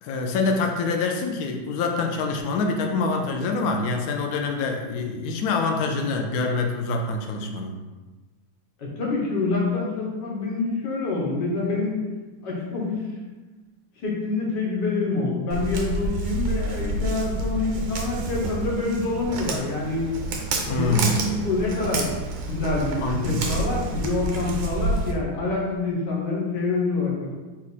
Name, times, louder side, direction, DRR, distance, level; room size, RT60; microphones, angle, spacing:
voice 1, 0.0-7.7 20.7-21.2 23.0-23.5, left 3 dB, 85° left, 3 dB, 0.7 m, -25 dB
voice 2, 8.8-12.0 12.4-13.1 14.0-20.0 20.7-22.1 22.5-27.3, left 3 dB, 65° left, -3 dB, 1.5 m, -26 dB
Walk footsteps, 15.5-25.1, right 2 dB, 80° right, 1.4 m, -29 dB
4.4 x 2.4 x 4.0 m, 1.2 s
omnidirectional pair, 2.1 m